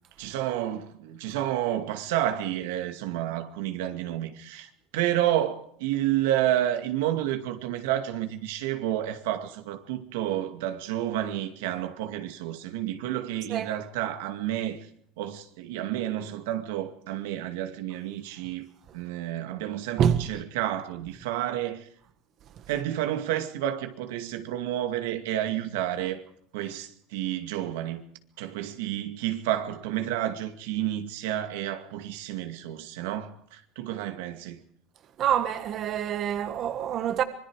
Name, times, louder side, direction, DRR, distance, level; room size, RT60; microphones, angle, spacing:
voice 1, 0.2-14.9 15.2-18.7 18.9-21.9 22.7-26.2 26.5-28.0 28.4-34.6, right 12 dB, 85° right, 2.3 m, -30 dB
voice 2, 35.2-37.2, right 9 dB, 40° right, 1.4 m, -26 dB
25.5 x 21.5 x 4.9 m
cardioid pair, 145°, 0 cm